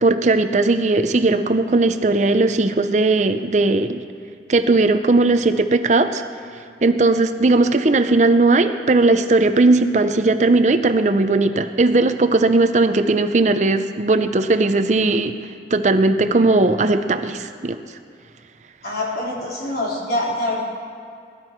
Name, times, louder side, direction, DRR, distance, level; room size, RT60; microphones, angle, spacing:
voice 1, 0.0-4.0 4.5-6.2 6.8-15.3 15.7-17.8, right 2 dB, 40° right, 9 dB, 0.5 m, -17 dB
voice 2, 18.8-20.7, left 1 dB, 60° left, -5 dB, 3.5 m, -25 dB
19.5 x 11.5 x 4.5 m, 2.4 s
head